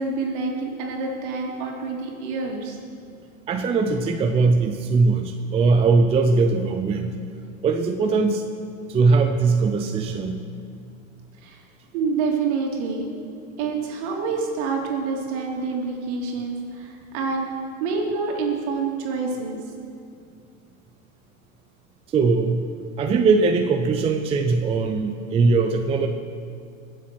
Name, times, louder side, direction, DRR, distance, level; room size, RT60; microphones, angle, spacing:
voice 1, 0.0-2.8 11.4-11.6 11.9-13.1 13.6-17.5 17.8-19.6, right 4 dB, 50° right, 1 dB, 3.1 m, -27 dB
voice 2, 3.5-7.1 7.6-8.4 8.9-10.4 22.1-22.7 23.0-26.1, right 4 dB, 15° right, 5 dB, 0.5 m, -20 dB
22.0 x 7.7 x 6.2 m, 2.5 s
hypercardioid pair, 125°, 42 cm